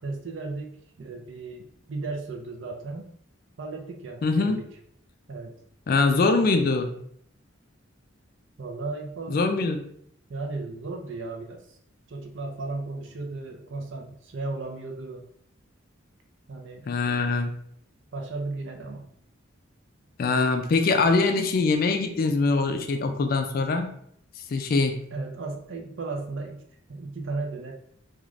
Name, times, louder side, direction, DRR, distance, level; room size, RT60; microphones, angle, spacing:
voice 1, 0.0-3.1 3.6-4.7 5.3-5.5 8.6-9.4 10.3-11.8 12.1-15.2 16.5-16.9 18.1-19.1 25.1-26.6 26.9-27.7, right 3 dB, 65° right, 3 dB, 0.5 m, -35 dB
voice 2, 4.2-4.6 5.9-6.9 9.3-9.8 16.9-17.5 20.2-23.9 24.5-25.0, left 3 dB, 45° left, 5 dB, 0.3 m, -23 dB
3.1 x 2.4 x 2.4 m, 0.67 s
head